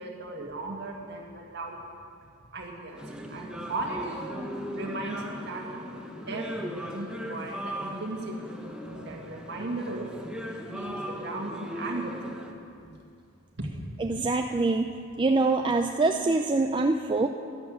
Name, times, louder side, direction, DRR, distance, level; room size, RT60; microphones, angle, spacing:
voice 1, 0.0-1.8 2.4-3.0 3.3-4.3 4.7-8.5 9.0-10.1 10.7-12.4 13.6-13.7, right 2 dB, 50° right, 0 dB, 2.0 m, -36 dB
sound 1, 3.0-12.5, equal, 5° right, 0.9 m, -38 dB
voice 2, 14.0-17.3, right 3 dB, 20° right, 5 dB, 0.4 m, -25 dB
11.5 x 11.5 x 7.4 m, 2.4 s
head